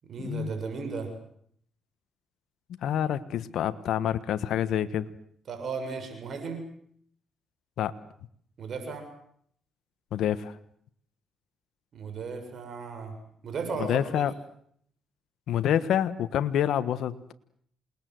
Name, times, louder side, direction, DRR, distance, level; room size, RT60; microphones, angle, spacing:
voice 1, 0.0-1.1 5.5-6.6 8.6-9.0 11.9-13.1 13.4-14.2, right 5 dB, 55° right, 6 dB, 7.1 m, -35 dB
voice 2, 2.8-5.1 7.8-7.9 10.1-10.5 13.8-14.3 15.5-17.3, left 10 dB, 75° left, 11 dB, 1.3 m, -27 dB
28.0 x 20.0 x 7.9 m, 0.66 s
cardioid pair, 90°, 0 cm